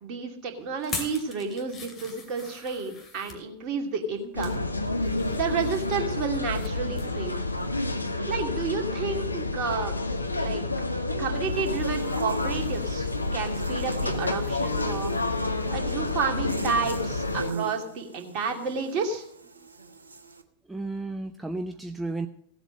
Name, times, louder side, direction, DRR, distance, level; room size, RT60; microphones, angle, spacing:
voice 1, 0.0-4.6 5.3-7.4 8.3-9.9 10.4-10.6 11.2-15.1 15.7-19.2, right 5 dB, 40° right, 2 dB, 2.6 m, -31 dB
sound 1, 0.8-3.4 4.0-4.6 5.0-6.7 7.0-7.2 7.6-7.7, left 4 dB, 20° left, 2.7 m, -41 dB
sound 2, 4.3-17.5, left 2 dB, 85° left, 0.9 m, -29 dB
Buzz, 11.3-20.4, right 4 dB, 75° right, 1.1 m, -43 dB
voice 2, 20.7-22.3, right 2 dB, 10° right, 7 dB, 0.6 m, -33 dB
16.0 x 8.0 x 6.5 m, 0.69 s
figure-of-eight pair, 90°, 0 cm